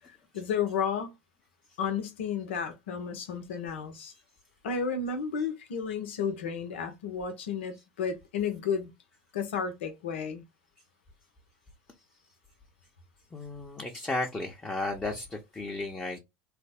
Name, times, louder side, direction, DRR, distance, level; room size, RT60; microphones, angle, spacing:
voice 1, 0.1-1.1 1.8-4.1 4.6-8.9 9.3-10.4, left 6 dB, 80° left, 0.9 m, -32 dB
voice 2, 13.3-16.2, left 2 dB, 15° left, 0.8 m, -34 dB
3.2 x 2.2 x 3.4 m
hypercardioid pair, 90°, 6 cm